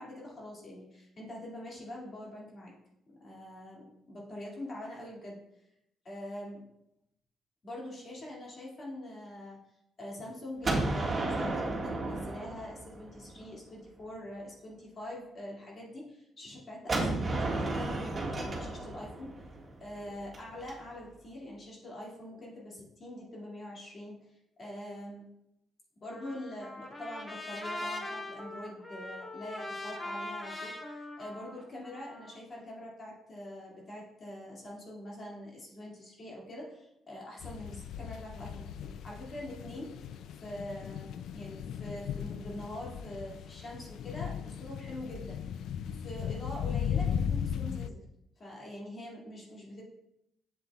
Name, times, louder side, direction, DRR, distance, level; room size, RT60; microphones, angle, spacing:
voice 1, 0.0-2.7 3.1-5.4 6.0-6.6 7.6-9.6 10.0-19.5 19.8-25.3 26.0-40.1 40.4-45.6 45.9-48.0 48.4-49.8, left 1 dB, 40° left, -3 dB, 2.1 m, -44 dB
Gunshot gunfire, 10.6-13.5 16.9-20.7, right 2 dB, 30° right, 1.6 m, -33 dB
Trumpet, 26.1-32.4, left 1 dB, 20° left, 1.1 m, -41 dB
sound 1, 37.4-47.9, left 8 dB, 80° left, 0.3 m, -37 dB
7.5 x 7.3 x 2.3 m, 0.83 s
cardioid pair, 90°, 0 cm